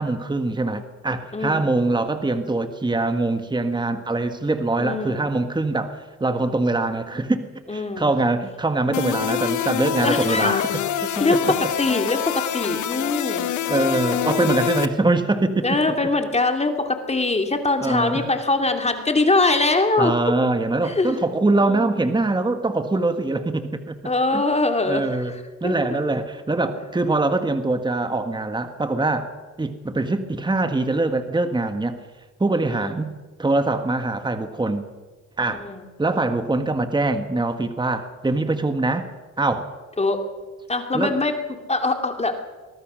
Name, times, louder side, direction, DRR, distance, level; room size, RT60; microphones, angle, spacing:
voice 1, 0.0-11.2 13.7-15.6 17.8-18.3 20.0-23.9 24.3-24.4 24.9-25.3 25.6-29.3 29.6-32.0 32.4-33.1 33.4-34.8 35.4-35.6 36.0-39.1 39.4-39.7 40.9-41.1, right 2 dB, 15° right, 8 dB, 1.7 m, -23 dB
voice 2, 1.3-1.7 4.8-5.3 7.7-8.1 10.0-10.7 11.2-13.5 15.6-20.1 20.8-21.2 21.7-21.9 24.0-25.7 32.7-33.1 35.5-35.8 40.0-40.2 40.7-41.3 41.7-42.4, left 3 dB, 20° left, 5 dB, 2.7 m, -23 dB
sound 1, 8.9-14.9, left 11 dB, 75° left, 1.3 m, -25 dB
23.5 x 19.0 x 6.3 m, 1.3 s
cardioid pair, 90°, 30 cm